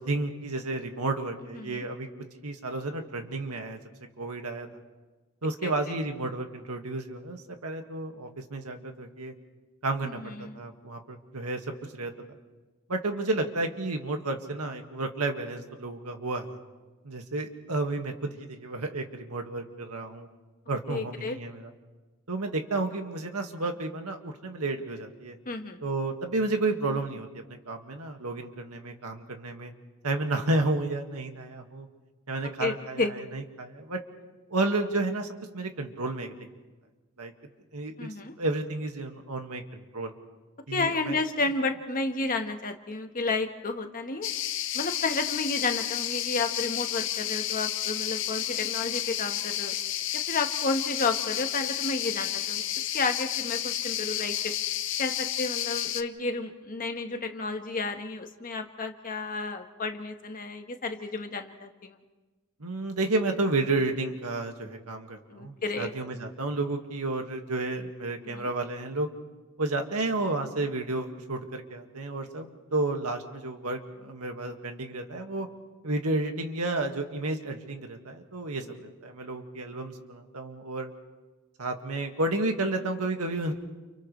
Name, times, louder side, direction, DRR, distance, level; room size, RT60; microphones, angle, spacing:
voice 1, 0.1-2.1 2.4-3.8 4.2-4.7 5.4-9.3 9.8-11.6 11.9-12.1 12.9-16.5 17.0-20.3 20.7-21.7 22.3-25.4 25.8-29.7 30.0-31.9 32.3-34.0 34.5-35.3 35.5-36.3 37.2-37.3 37.7-38.1 38.4-40.1 40.7-41.2 62.6-69.1 69.6-75.5 75.8-80.9 81.6-83.5, right 2 dB, 85° right, 4 dB, 2.0 m, -31 dB
voice 2, 1.5-1.8 5.6-5.7 10.0-10.6 20.9-21.4 25.4-25.8 32.6-33.2 38.0-38.3 40.7-44.3 44.7-49.7 50.3-54.5 55.0-61.9 65.3-65.9 68.3-68.5 78.7-78.8, left 3 dB, 40° left, 5 dB, 1.4 m, -31 dB
sound 1, 44.2-56.0, left 12 dB, 60° left, 0.7 m, -31 dB
30.0 x 29.5 x 3.3 m, 1.3 s
head